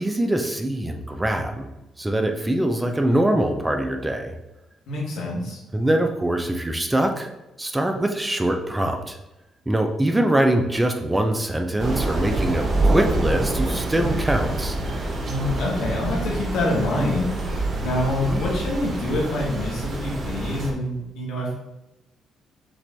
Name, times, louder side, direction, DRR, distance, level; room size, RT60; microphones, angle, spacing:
voice 1, 0.0-1.7 2.0-4.3 5.7-7.3 7.6-9.2 9.7-14.8 18.3-18.4, right 1 dB, 15° right, 4 dB, 0.5 m, -23 dB
voice 2, 4.9-5.6 15.2-21.5, left 1 dB, 80° left, -3 dB, 1.5 m, -26 dB
Thunder / Rain, 11.8-20.7, right 2 dB, 50° right, 0.9 m, -26 dB
5.9 x 2.6 x 3.4 m, 0.96 s
cardioid pair, 90°, 0 cm